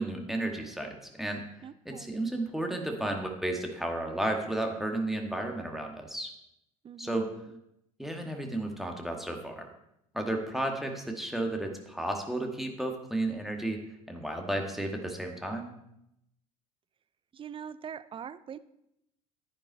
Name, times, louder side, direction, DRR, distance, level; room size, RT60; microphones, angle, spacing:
voice 1, 0.0-1.4 1.9-6.3 7.0-7.3 8.0-9.7 10.1-13.8 14.1-15.7, right 1 dB, ahead, 2 dB, 2.0 m, -33 dB
voice 2, 1.6-2.2 6.8-7.5 17.3-18.6, right 8 dB, 25° right, 16 dB, 0.6 m, -43 dB
11.5 x 9.9 x 4.2 m, 0.80 s
figure-of-eight pair, 65°, 19 cm